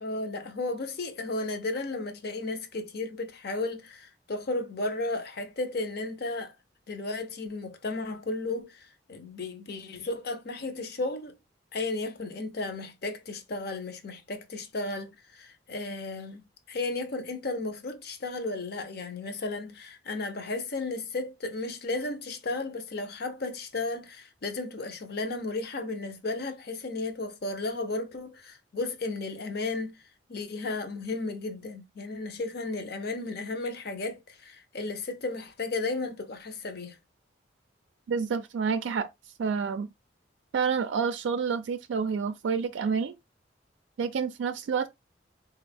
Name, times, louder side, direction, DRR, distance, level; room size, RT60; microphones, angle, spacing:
voice 1, 0.0-6.5 6.9-11.4 11.7-29.9 30.3-37.0, left 2 dB, 60° left, 0.7 m, -34 dB
voice 2, 38.1-39.1 39.4-39.9 40.5-43.1 44.0-44.9, right 6 dB, 80° right, 0.3 m, -28 dB
4.2 x 2.4 x 3.4 m
head